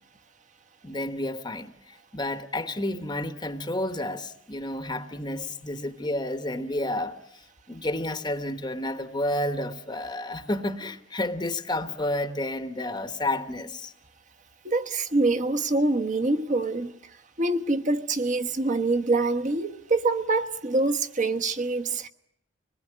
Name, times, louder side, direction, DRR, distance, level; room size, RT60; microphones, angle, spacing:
voice 1, 0.8-7.4 7.7-13.9, left 1 dB, 20° left, 1.0 m, -31 dB
voice 2, 14.6-17.0 17.4-22.1, right 2 dB, 40° right, 1.2 m, -25 dB
25.5 x 20.5 x 10.0 m
head